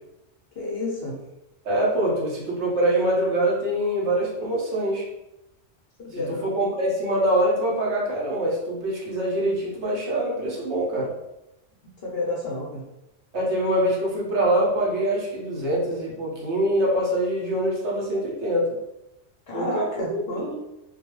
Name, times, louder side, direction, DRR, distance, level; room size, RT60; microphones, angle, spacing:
voice 1, 0.6-1.2 6.0-6.5 12.0-12.8 19.5-20.5, left 2 dB, 60° left, -4 dB, 0.7 m, -30 dB
voice 2, 1.6-5.1 6.1-11.1 13.3-18.8 19.5-20.6, right 1 dB, 60° right, -4 dB, 0.9 m, -24 dB
2.3 x 2.2 x 3.0 m, 0.91 s
omnidirectional pair, 1.4 m